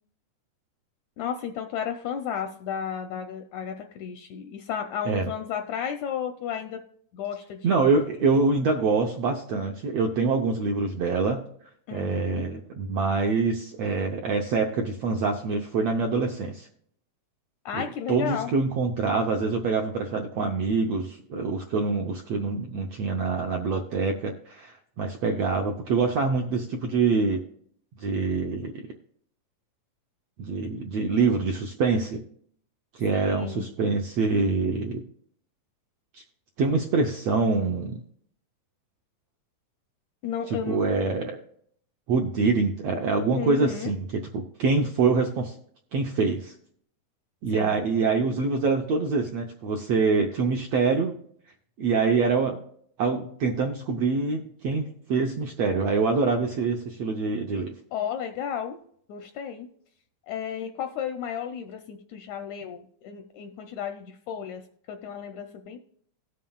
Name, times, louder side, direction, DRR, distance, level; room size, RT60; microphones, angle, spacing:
voice 1, 1.2-6.8 7.1-7.9 11.9-12.5 17.6-18.5 33.1-33.7 40.2-40.8 43.3-43.9 47.5-47.8 57.9-58.8 59.1-59.7 60.3-64.6 64.9-65.8, left 8 dB, 80° left, 6 dB, 1.7 m, -33 dB
voice 2, 7.6-11.4 11.9-16.7 17.7-27.4 28.0-28.9 30.4-32.2 32.9-35.0 36.1-36.2 36.6-38.0 40.5-41.4 42.1-45.5 45.9-46.5 47.4-51.2 51.8-52.6 53.0-57.7, right 4 dB, 80° right, 2 dB, 1.4 m, -25 dB
18.0 x 7.5 x 2.3 m, 0.63 s
omnidirectional pair, 3.8 m